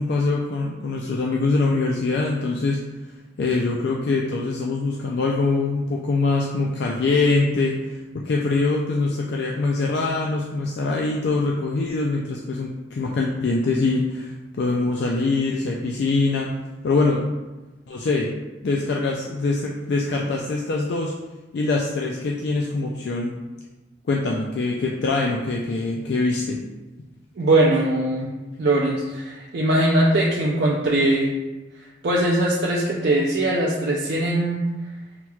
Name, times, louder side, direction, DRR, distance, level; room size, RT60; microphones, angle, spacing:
voice 1, 0.0-2.8 3.4-16.5 16.8-17.3 17.9-18.3 18.6-21.2 21.5-23.4 24.1-26.6, left 3 dB, 60° left, -1 dB, 0.3 m, -23 dB
voice 2, 27.4-28.3 28.6-31.3 32.0-34.6, right 1 dB, 55° right, -3 dB, 0.4 m, -21 dB
5.6 x 3.0 x 2.3 m, 1.1 s
head